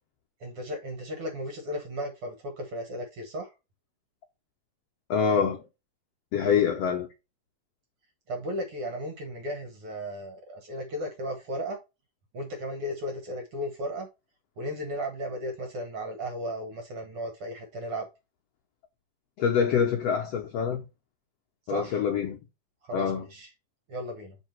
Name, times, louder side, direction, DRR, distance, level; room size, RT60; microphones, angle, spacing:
voice 1, 0.4-3.5 6.4-6.6 8.3-11.8 12.3-14.1 14.6-18.1 21.7-22.0 22.8-23.5 23.9-24.4, equal, 60° right, 1.6 m, -35 dB
voice 2, 5.1-5.6 6.3-7.1 19.4-20.8 21.7-22.4 22.9-23.2, left 7 dB, 80° left, 1.4 m, -25 dB
7.3 x 3.6 x 4.4 m
omnidirectional pair, 3.8 m